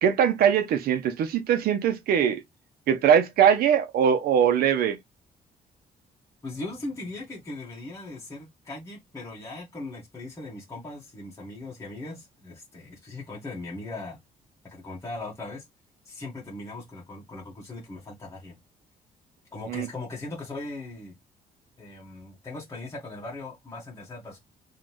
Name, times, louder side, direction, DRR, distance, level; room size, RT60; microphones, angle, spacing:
voice 1, 0.0-2.4 2.9-5.0 19.7-19.9, right 8 dB, 75° right, 0.8 m, -21 dB
voice 2, 6.4-14.2 14.6-15.6 16.0-18.6 19.5-21.1 21.8-24.4, left 2 dB, 20° left, 1.7 m, -39 dB
3.8 x 3.2 x 3.1 m
cardioid pair, 160°, 16 cm